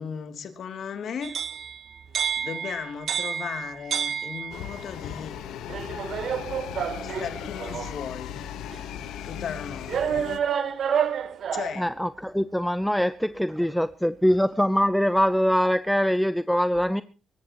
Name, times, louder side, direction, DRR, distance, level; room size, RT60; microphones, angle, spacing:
voice 1, 0.0-1.4 2.4-5.4 7.0-8.4 9.2-10.3 11.5-11.9, left 7 dB, 60° left, 7 dB, 2.8 m, -36 dB
sound 1, 1.2-4.8 5.7-8.0 8.7-8.8 9.9-11.8, right 8 dB, 60° right, 1.4 m, -29 dB
sound 2, 4.5-10.4, left 10 dB, 85° left, 1.3 m, -37 dB
voice 2, 11.8-17.0, equal, ahead, 13 dB, 0.7 m, -23 dB
25.0 x 14.5 x 3.0 m, 0.35 s
cardioid pair, 90°, 0 cm